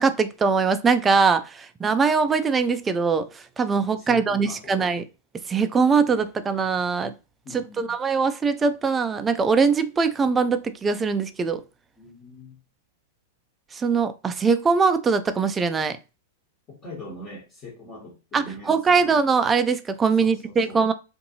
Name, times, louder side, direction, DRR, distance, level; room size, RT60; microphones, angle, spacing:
voice 1, 0.0-5.0 5.5-7.1 7.5-11.6 13.7-16.0 18.3-20.9, right 5 dB, 20° right, 0.3 m, -22 dB
voice 2, 4.0-4.7 7.4-8.0 12.0-12.6 16.7-19.2 20.2-20.8, left 1 dB, 30° left, 1.1 m, -42 dB
2.6 x 2.5 x 2.7 m
hypercardioid pair, 110°, 0 cm